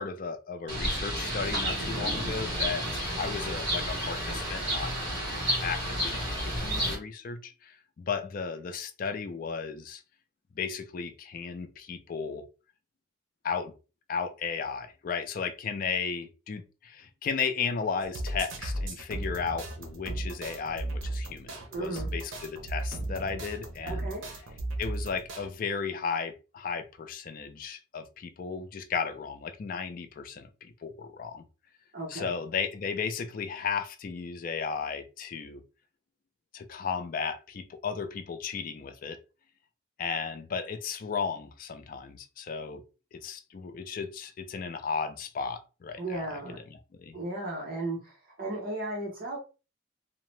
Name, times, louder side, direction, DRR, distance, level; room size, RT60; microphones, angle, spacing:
voice 1, 0.0-4.9 5.6-10.0 10.6-12.4 13.4-13.7 14.1-24.1 24.8-31.4 32.1-35.6 36.5-39.2 40.0-42.8 43.1-46.4 47.0-47.2, left 5 dB, 45° left, 0.3 m, -35 dB
Bird, 0.7-6.9, equal, 65° right, 1.5 m, -31 dB
sound 1, 18.0-25.5, right 1 dB, 80° right, 0.7 m, -35 dB
voice 2, 21.7-22.1 23.8-24.2 31.9-32.4 46.0-46.6 47.1-49.4, right 2 dB, 45° right, 0.8 m, -35 dB
2.7 x 2.0 x 3.1 m
head